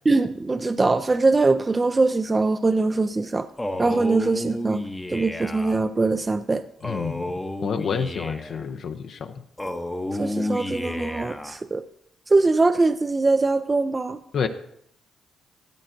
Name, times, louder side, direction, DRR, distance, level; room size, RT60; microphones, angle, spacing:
voice 1, 0.1-3.5 3.8-4.8 5.1-6.6 10.2-11.8 12.3-14.2, right 3 dB, 25° right, 10 dB, 0.3 m, -22 dB
Male speech man speaking, 3.6-5.8 6.8-8.7 9.6-11.6, left 1 dB, 10° left, 0.7 m, -31 dB
voice 2, 6.8-7.3 7.6-9.3 14.3-14.5, left 6 dB, 60° left, 6 dB, 0.5 m, -28 dB
13.0 x 8.0 x 2.5 m, 0.72 s
cardioid pair, 90°, 0 cm